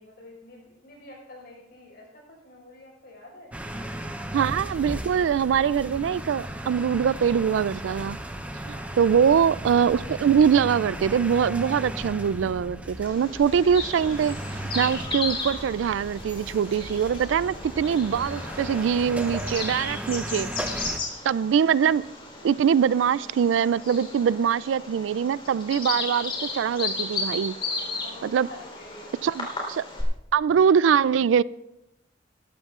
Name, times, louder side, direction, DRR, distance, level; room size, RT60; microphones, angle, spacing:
voice 1, 0.0-3.5 8.6-9.0 28.0-29.1, left 2 dB, 60° left, 5.3 m, -47 dB
sound 1, 3.5-21.0, right 1 dB, 10° right, 0.7 m, -36 dB
voice 2, 4.3-8.2 9.0-14.4 14.7-20.5 20.8-20.9 21.3-22.0 22.4-27.6 28.2-28.5 29.2-29.8 30.3-31.4, right 7 dB, 85° right, 0.3 m, -23 dB
Bird vocalization bird call bird song, 13.0-30.0, left 3 dB, 30° left, 3.7 m, -35 dB
21.0 x 13.5 x 2.5 m
head